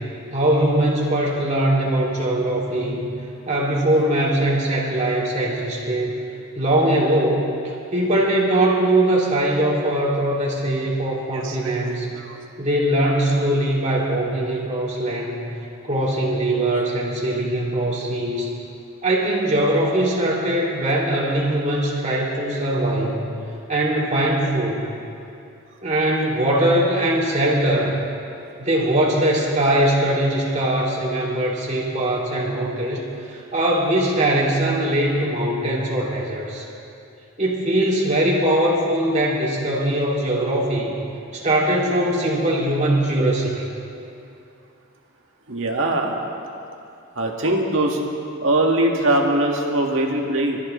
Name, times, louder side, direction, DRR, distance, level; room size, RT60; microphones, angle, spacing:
voice 1, 0.3-3.1 3.5-6.1 6.5-7.5 7.9-12.1 12.6-15.5 15.8-18.5 19.0-23.3 23.7-24.9 25.8-28.0 28.6-36.7 37.4-41.0 41.3-43.5, right 1 dB, 35° right, -4 dB, 2.8 m, -21 dB
voice 2, 11.3-11.7 12.2-12.4 45.5-46.1 47.2-48.0 48.4-50.6, right 1 dB, 70° right, 0 dB, 1.9 m, -21 dB
26.0 x 14.0 x 3.3 m, 2.6 s
head